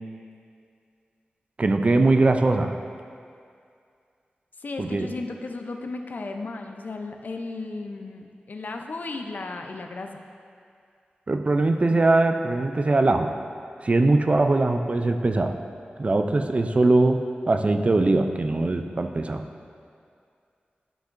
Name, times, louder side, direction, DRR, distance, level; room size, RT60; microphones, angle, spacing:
voice 1, 1.6-2.7 4.8-5.1 11.3-13.3 13.8-15.6 16.0-19.4, right 2 dB, 40° right, 6 dB, 0.4 m, -21 dB
voice 2, 4.6-10.2, left 3 dB, 60° left, 4 dB, 0.5 m, -35 dB
10.0 x 5.8 x 2.5 m, 2.3 s
wide cardioid pair, 80°, 3 cm